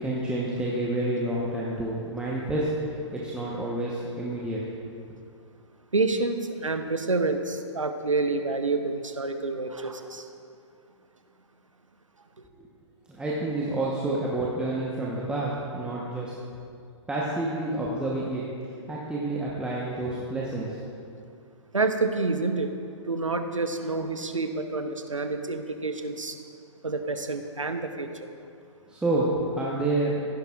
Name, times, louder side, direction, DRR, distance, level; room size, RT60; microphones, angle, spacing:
voice 1, 0.0-2.7 3.1-4.6 5.1-5.2 12.6-12.7 13.1-16.3 17.1-20.8 28.9-30.2, right 2 dB, 5° right, -5 dB, 1.0 m, -29 dB
voice 2, 5.9-10.3 20.7-20.8 21.7-22.7 23.0-26.4 26.8-28.1, right 3 dB, 85° right, 7 dB, 0.9 m, -28 dB
15.5 x 10.5 x 2.4 m, 2.4 s
figure-of-eight pair, 115°, 16 cm